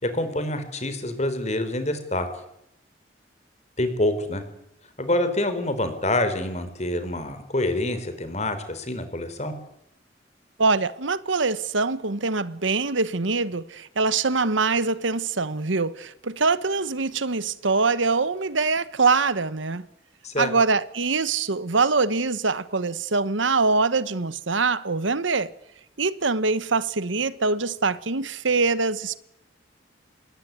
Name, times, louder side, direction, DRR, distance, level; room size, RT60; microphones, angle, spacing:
voice 1, 0.0-2.3 3.8-4.4 5.0-9.5 20.2-20.5, left 1 dB, 35° left, 4.4 m, -26 dB
voice 2, 10.6-19.9 20.4-25.5 26.0-29.2, right 4 dB, 90° right, 1.2 m, -24 dB
26.5 x 21.5 x 9.6 m
head